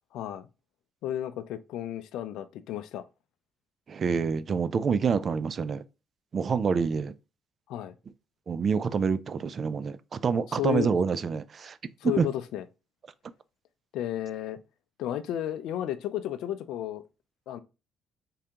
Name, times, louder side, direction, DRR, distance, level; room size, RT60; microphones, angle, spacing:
voice 1, 0.1-0.5 1.0-3.0 7.7-7.9 10.5-10.9 12.0-12.6 13.9-14.6 15.0-17.0 17.5-17.6, left 12 dB, 80° left, 0.3 m, -32 dB
voice 2, 3.9-5.8 6.3-7.1 8.5-11.8 12.2-12.3, right 5 dB, 50° right, 0.3 m, -27 dB
3.8 x 3.3 x 2.8 m
supercardioid pair, 60°, 0 cm